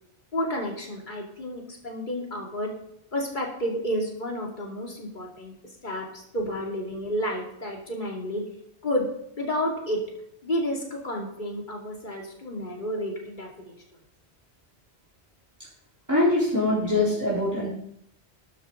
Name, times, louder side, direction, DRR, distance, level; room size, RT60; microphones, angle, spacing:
voice 1, 0.3-2.7 3.1-5.5 5.8-8.4 8.8-9.1 9.4-10.0 10.4-13.8, equal, 45° left, -1 dB, 2.9 m, -31 dB
voice 2, 16.1-17.7, left 2 dB, 15° right, -8 dB, 3.8 m, -23 dB
13.0 x 12.5 x 3.9 m, 0.75 s
omnidirectional pair, 1.1 m